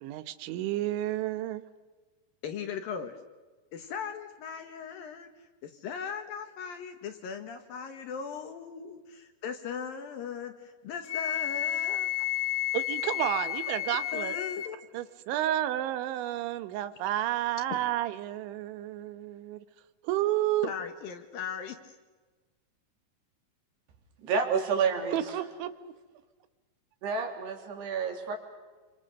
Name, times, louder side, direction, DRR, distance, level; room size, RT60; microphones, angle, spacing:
voice 1, 0.0-1.6 12.7-14.4 14.9-19.7 20.0-20.7 25.1-25.7, right 13 dB, 90° right, 12 dB, 3.5 m, -31 dB
voice 2, 2.4-3.2 3.7-5.3 5.6-12.3 14.1-14.8 17.7-17.8 20.6-21.8, left 7 dB, 65° left, 7 dB, 2.6 m, -38 dB
Wind instrument woodwind instrument, 11.1-14.7, left 13 dB, 85° left, 1.7 m, -31 dB
voice 3, 24.2-25.2 27.0-28.4, right 5 dB, 65° right, 3 dB, 4.9 m, -29 dB
28.5 x 26.0 x 6.6 m, 1.3 s
omnidirectional pair, 5.2 m